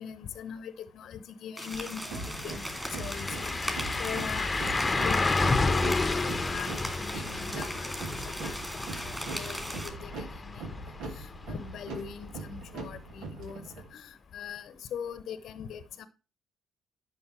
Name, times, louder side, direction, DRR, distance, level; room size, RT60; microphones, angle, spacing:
voice 1, 0.0-2.6 2.9-7.9 8.4-9.7 10.0-10.6 11.2-13.6 13.9-16.1, left 7 dB, 55° left, 0.9 m, -41 dB
sound 1, 1.6-9.9, equal, 5° right, 2.9 m, -39 dB
sound 2, 1.7-1.8 2.2-11.9 12.3-12.4 15.2-15.3, left 3 dB, 25° left, 1.1 m, -31 dB
sound 3, 2.1-13.9, right 3 dB, 65° right, 2.1 m, -42 dB
11.0 x 5.4 x 4.4 m
figure-of-eight pair, 50°, 0 cm